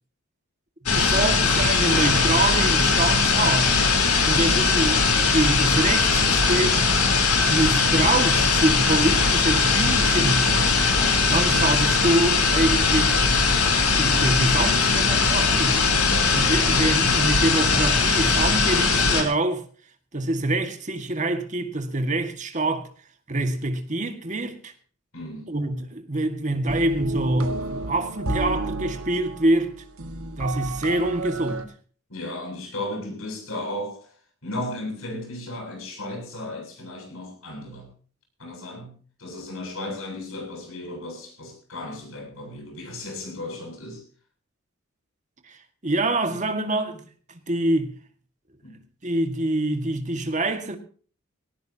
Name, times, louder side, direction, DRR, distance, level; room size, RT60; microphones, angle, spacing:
sound 1, 0.9-19.2, left 4 dB, 90° left, 4.0 m, -20 dB
voice 1, 0.9-3.9 4.3-6.9 7.3-10.5 11.3-13.4 13.7-15.9 16.3-19.6 20.1-22.9 23.3-24.7 25.5-29.7 30.4-31.7 45.4-45.6 45.8-47.0 47.5-47.9 49.0-50.8, right 2 dB, 35° right, 1.9 m, -25 dB
voice 2, 4.3-4.6 10.9-11.2 14.5-15.3 16.0-17.4 25.1-25.5 32.1-34.1 34.4-37.9 38.4-44.0 48.6-48.8, left 1 dB, 75° left, 7.6 m, -35 dB
sound 2, 26.7-31.7, right 2 dB, 75° right, 2.0 m, -31 dB
19.0 x 18.5 x 2.9 m
head